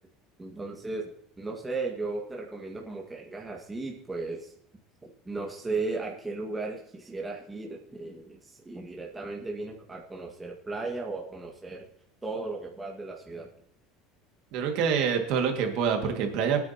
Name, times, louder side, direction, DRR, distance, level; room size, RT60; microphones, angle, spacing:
voice 1, 0.4-4.5 5.3-11.9 12.2-13.5, right 3 dB, 15° right, -1 dB, 1.8 m, -36 dB
voice 2, 14.5-16.6, right 6 dB, 65° right, 4 dB, 2.0 m, -26 dB
19.0 x 9.5 x 2.9 m, 0.65 s
supercardioid pair, 100°, 0 cm